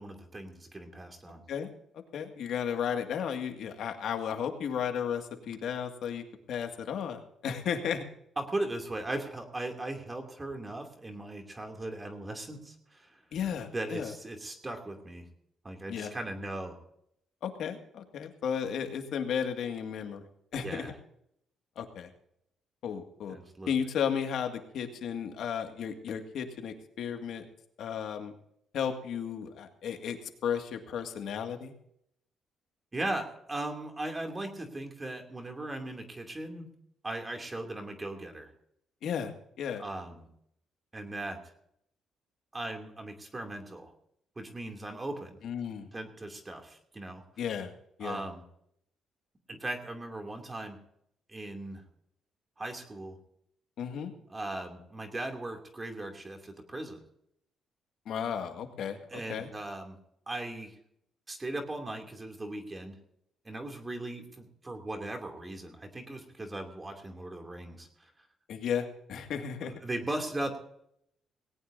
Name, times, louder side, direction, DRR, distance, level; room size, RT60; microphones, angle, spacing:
voice 1, 0.0-1.4 8.4-13.2 13.7-15.3 15.6-16.8 20.6-21.0 23.3-23.7 32.9-36.7 37.0-38.5 39.8-40.3 40.9-41.4 42.5-43.9 44.4-45.4 45.9-47.2 48.0-48.4 49.5-50.8 51.3-51.8 52.6-53.2 54.3-57.0 59.1-60.0 60.3-60.8 61.3-63.0 63.4-68.1 69.6-70.6, right 2 dB, 20° right, 4 dB, 2.7 m, -38 dB
voice 2, 2.1-8.0 13.3-14.1 15.9-16.1 17.4-20.2 20.5-20.9 21.8-22.1 22.8-23.4 23.7-27.4 27.8-28.3 28.7-31.7 39.0-39.8 45.4-45.9 47.4-47.7 48.0-48.2 53.8-54.1 58.1-59.5 68.5-69.7, left 8 dB, 75° left, 5 dB, 2.0 m, -34 dB
19.0 x 17.5 x 2.7 m, 0.73 s
cardioid pair, 90°, 0 cm